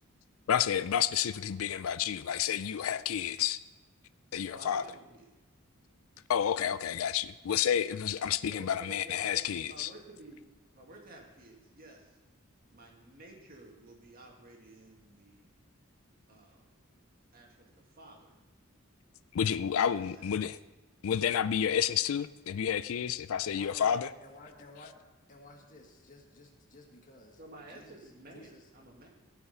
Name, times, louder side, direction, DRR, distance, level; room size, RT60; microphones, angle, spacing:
voice 1, 0.5-3.6 4.3-4.8 6.3-9.9 19.3-20.6 21.0-24.1, left 9 dB, 75° left, 15 dB, 0.4 m, -30 dB
voice 2, 4.5-5.3 8.5-10.4 10.7-12.2 12.7-15.6 16.3-16.8 17.3-18.4 19.7-20.6 27.4-29.1, right 1 dB, 45° right, 0 dB, 2.1 m, -52 dB
voice 3, 23.4-24.9 25.3-27.4 27.7-28.0 28.3-28.6, left 1 dB, 40° left, 1 dB, 1.7 m, -53 dB
16.5 x 5.8 x 5.5 m, 1.1 s
head